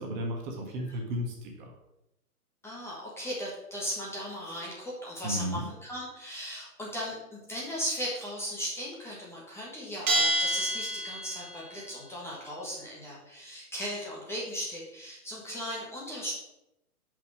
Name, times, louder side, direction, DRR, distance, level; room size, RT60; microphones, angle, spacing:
voice 1, 0.0-1.8 5.2-5.7, equal, 30° right, 1 dB, 1.5 m, -34 dB
voice 2, 2.6-16.3, equal, 5° left, -5 dB, 1.4 m, -37 dB
Bell, 10.1-11.6, right 1 dB, 60° right, 1.9 m, -28 dB
6.6 x 5.3 x 6.3 m, 0.89 s
hypercardioid pair, 140°, 46 cm